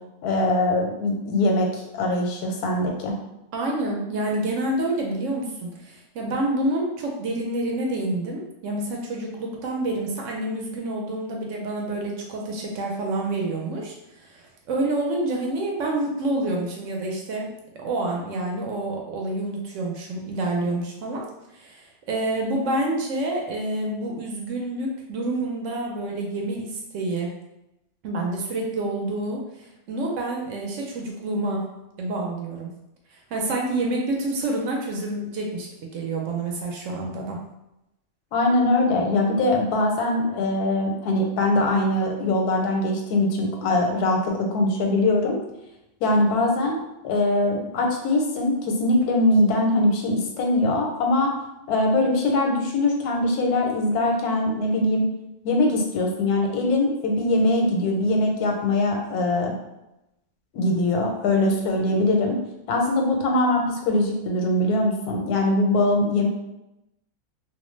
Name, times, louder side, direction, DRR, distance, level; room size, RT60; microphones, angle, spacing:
voice 1, 0.2-3.1 38.3-45.4 46.0-46.7 47.0-51.3 51.7-55.1 55.4-59.5 60.5-62.4 62.7-66.3, left 2 dB, 90° left, 1 dB, 1.1 m, -22 dB
voice 2, 3.5-17.5 17.8-21.2 21.5-27.3 28.0-31.6 32.0-32.7 33.1-35.7 35.9-37.4, right 2 dB, 70° right, 0 dB, 0.8 m, -28 dB
2.5 x 2.1 x 3.0 m, 0.91 s
omnidirectional pair, 1.6 m